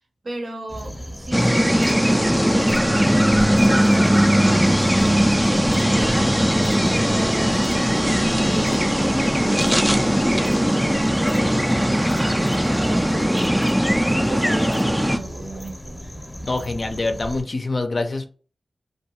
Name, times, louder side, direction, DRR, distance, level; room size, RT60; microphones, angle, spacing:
voice 1, 0.2-6.4 6.9-10.0 10.4-16.0, right 1 dB, 60° right, 0.6 m, -36 dB
sound 1, 0.7-17.4, equal, 10° left, 0.7 m, -35 dB
sound 2, 1.3-15.2, equal, 5° right, 0.3 m, -19 dB
sound 3, 2.7-15.7, right 1 dB, 85° right, 0.8 m, -36 dB
voice 2, 16.4-18.3, left 2 dB, 55° left, 0.5 m, -25 dB
2.6 x 2.2 x 2.9 m
cardioid pair, 45°, 0 cm